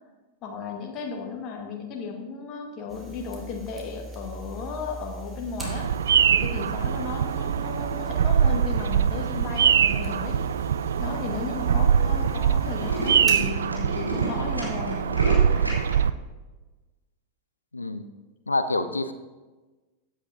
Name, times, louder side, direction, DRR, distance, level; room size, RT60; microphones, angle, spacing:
voice 1, 0.4-5.9 6.3-10.4 11.0-15.5, left 5 dB, 35° left, 2 dB, 1.6 m, -35 dB
sound 1, 2.9-13.3, right 2 dB, 10° right, 2.9 m, -41 dB
Bird vocalization bird call bird song, 5.6-16.1, right 8 dB, 65° right, 0.4 m, -23 dB
Tools, 9.8-10.3 10.9-11.0 11.2-11.3 11.5-11.7 12.0-12.2 12.4-15.9, right 1 dB, 85° right, 3.0 m, -33 dB
voice 2, 17.7-18.1 18.5-19.1, left 2 dB, 80° left, 12 dB, 0.7 m, -27 dB
15.0 x 9.9 x 2.7 m, 1.2 s
figure-of-eight pair, 90°, 0 cm